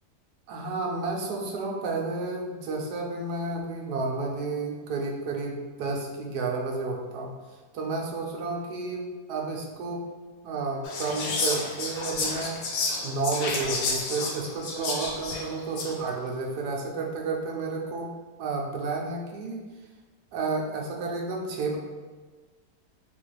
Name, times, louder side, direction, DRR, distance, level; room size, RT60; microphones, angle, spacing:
voice 1, 0.5-7.3 7.7-10.0 10.4-12.6 13.0-18.1 18.4-19.6 20.3-21.8, right 3 dB, 75° right, 0 dB, 1.1 m, -31 dB
Whispering, 10.8-16.0, left 3 dB, 80° left, 1.2 m, -31 dB
3.6 x 2.3 x 3.2 m, 1.4 s
omnidirectional pair, 1.8 m